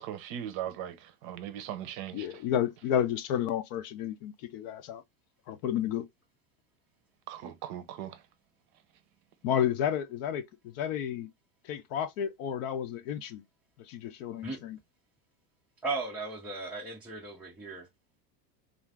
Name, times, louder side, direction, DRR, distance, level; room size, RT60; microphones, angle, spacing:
voice 1, 0.0-2.3 7.3-8.2, right 10 dB, 50° right, 0.6 m, -39 dB
voice 2, 2.1-5.0 5.5-6.1 9.4-11.3 11.6-13.4 13.9-14.8, left 9 dB, 50° left, 0.5 m, -31 dB
voice 3, 15.8-17.9, right 3 dB, 5° right, 0.4 m, -36 dB
2.5 x 2.4 x 3.2 m
supercardioid pair, 120°, 50 cm